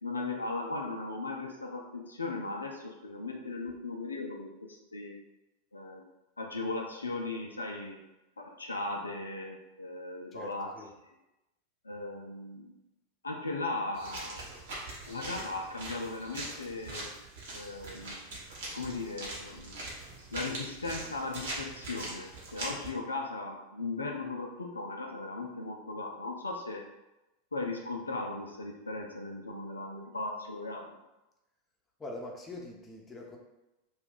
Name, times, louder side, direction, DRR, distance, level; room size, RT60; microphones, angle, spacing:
voice 1, 0.0-5.2 5.7-6.0 6.4-8.0 8.4-10.7 11.8-12.8 13.2-14.4 15.1-17.1 17.5-18.2 18.7-19.8 20.3-26.9 27.5-31.0, left 2 dB, 80° left, 1 dB, 0.4 m, -37 dB
voice 2, 10.3-10.9 32.0-33.4, left 1 dB, 15° left, -1 dB, 0.7 m, -43 dB
sound 1, 13.9-22.9, right 2 dB, 65° right, 1.0 m, -42 dB
2.7 x 2.3 x 3.7 m, 0.96 s
figure-of-eight pair, 90°, 0 cm